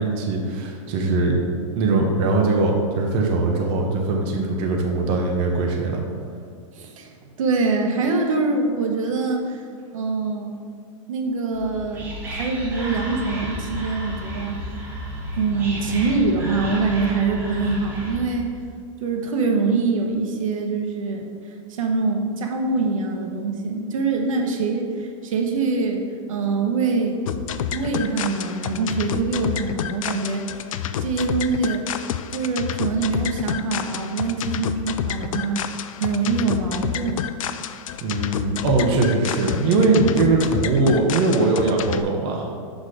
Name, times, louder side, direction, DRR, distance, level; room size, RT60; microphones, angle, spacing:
voice 1, 0.0-6.0 38.0-42.5, right 3 dB, 30° right, 0 dB, 0.8 m, -21 dB
voice 2, 6.7-9.6 9.9-10.5 11.1-14.7 15.4-18.5 19.0-21.3 21.7-26.0 26.3-27.2 27.7-30.5 31.0-31.8 32.3-35.6 36.0-37.2, right 4 dB, 85° right, 2 dB, 1.0 m, -24 dB
Whispering, 11.5-18.5, equal, 10° right, 1.1 m, -32 dB
sound 1, 27.3-42.0, left 9 dB, 85° left, 0.4 m, -29 dB
6.2 x 4.2 x 4.9 m, 2.2 s
supercardioid pair, 165°, 17 cm